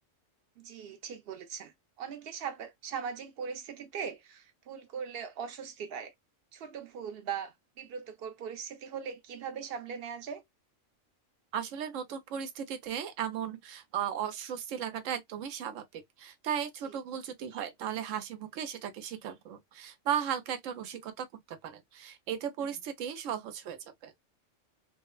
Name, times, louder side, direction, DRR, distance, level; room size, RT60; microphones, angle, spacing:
voice 1, 0.6-6.1 6.5-10.4 16.8-16.9 22.6-22.7, right 7 dB, 60° right, 0.8 m, -40 dB
voice 2, 11.5-24.1, right 9 dB, 85° right, 1.0 m, -36 dB
3.0 x 2.1 x 2.2 m
omnidirectional pair, 1.3 m